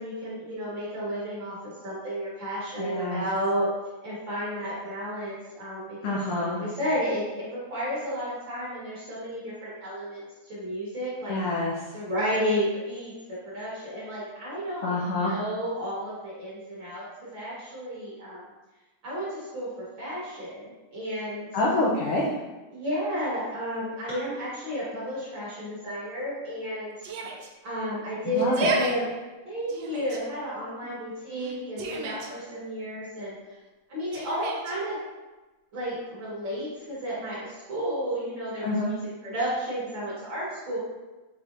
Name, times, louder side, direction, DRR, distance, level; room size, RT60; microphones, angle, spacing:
voice 1, 0.0-3.7 4.0-11.4 11.9-17.1 17.3-18.4 19.0-20.6 20.9-21.5 22.7-26.9 27.6-29.1 29.4-33.3 33.9-35.0 35.7-40.8, equal, 50° right, -9 dB, 1.6 m, -32 dB
voice 2, 2.8-3.2 6.0-6.6 11.3-11.8 14.8-15.3 21.5-22.3 28.3-28.7 38.6-38.9, left 2 dB, 80° left, -4 dB, 1.3 m, -26 dB
Yell, 27.0-27.5 28.4-28.9 29.7-30.2 31.4-32.3 34.1-34.7, right 4 dB, 80° right, 1.5 m, -32 dB
5.7 x 3.5 x 2.5 m, 1.2 s
omnidirectional pair, 3.5 m